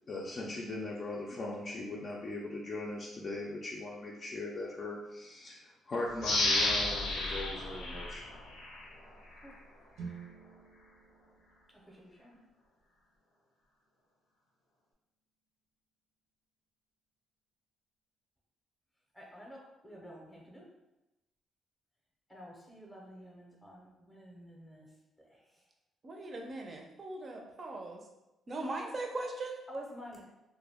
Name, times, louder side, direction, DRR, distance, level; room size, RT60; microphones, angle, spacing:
voice 1, 0.1-8.2, left 2 dB, 45° left, -3 dB, 0.4 m, -39 dB
sound 1, 6.2-8.9 9.4-9.5, left 2 dB, 90° left, 0.6 m, -32 dB
sound 2, 9.9-14.0, right 5 dB, 80° right, 0.7 m, -51 dB
voice 2, 11.9-12.4 19.1-20.6 22.3-24.9 25.2-25.4 28.5-28.8 29.7-30.2, equal, 5° left, -3 dB, 0.6 m, -49 dB
voice 3, 26.0-28.0 28.5-29.6, right 2 dB, 40° right, 2 dB, 0.5 m, -39 dB
2.2 x 2.1 x 3.4 m, 0.98 s
cardioid pair, 90°, 0 cm